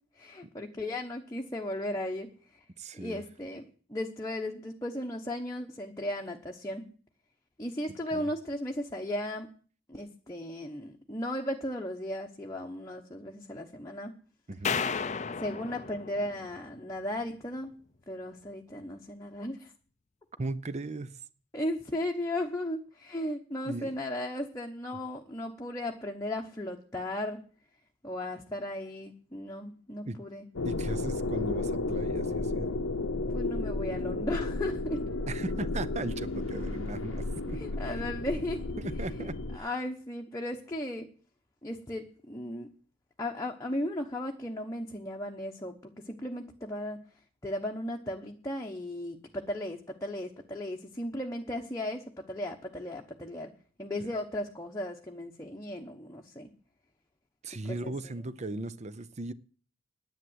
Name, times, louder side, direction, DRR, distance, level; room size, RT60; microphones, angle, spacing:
voice 1, 0.2-2.3 2.9-3.6 3.9-6.8 7.6-9.5 9.9-14.1 15.4-17.7 18.1-19.7 21.5-27.4 28.0-30.4 33.3-35.0 37.6-38.6 39.2-39.3 39.6-41.1 41.6-42.7 43.2-45.7 46.1-47.0 47.4-53.5 53.8-56.5 57.6-58.1, left 1 dB, 15° left, 1.0 m, -36 dB
voice 2, 2.8-3.2 7.9-8.3 14.5-14.8 20.4-21.2 23.6-23.9 30.0-30.2 30.6-32.7 35.3-38.0 38.8-39.7 54.0-54.1 57.4-59.3, right 2 dB, 30° right, 0.6 m, -38 dB
sound 1, 14.6-17.0, left 6 dB, 35° left, 0.5 m, -34 dB
sound 2, 30.5-39.6, left 2 dB, 70° left, 0.8 m, -33 dB
10.5 x 9.0 x 8.0 m
head